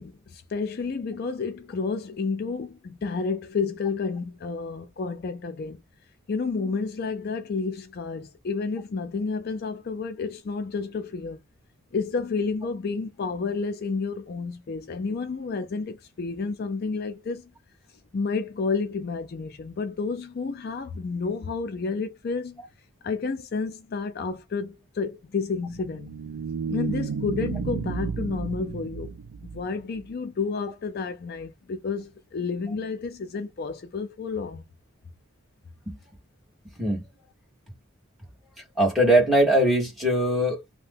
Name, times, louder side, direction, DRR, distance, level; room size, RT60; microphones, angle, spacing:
voice 1, 0.0-5.8 6.3-11.4 11.9-17.5 18.1-22.6 23.0-26.2 26.7-29.1 29.4-34.6, left 4 dB, 45° left, 0.4 m, -30 dB
sound 1, 25.5-30.1, right 6 dB, 65° right, 0.3 m, -32 dB
voice 2, 38.8-40.6, right 1 dB, ahead, 1.1 m, -21 dB
2.7 x 2.1 x 3.4 m
head